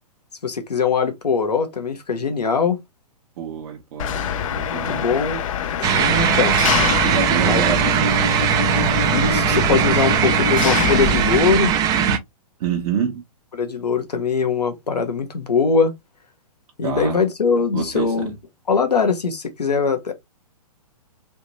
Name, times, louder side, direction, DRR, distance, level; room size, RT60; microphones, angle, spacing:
voice 1, 0.4-2.8 4.7-5.4 5.8-6.6 7.4-7.6 9.1-11.7 13.5-15.9 16.8-18.3 18.7-20.1, left 5 dB, 85° left, 1.0 m, -21 dB
voice 2, 3.4-5.1 7.0-8.4 12.6-13.2 16.8-17.2 17.7-18.4, right 8 dB, 50° right, 0.9 m, -27 dB
Engine, 4.0-11.4, left 9 dB, 55° left, 0.5 m, -25 dB
sound 1, 5.8-12.2, right 9 dB, 20° right, 0.4 m, -19 dB
3.4 x 2.8 x 2.8 m
hypercardioid pair, 125°, 20 cm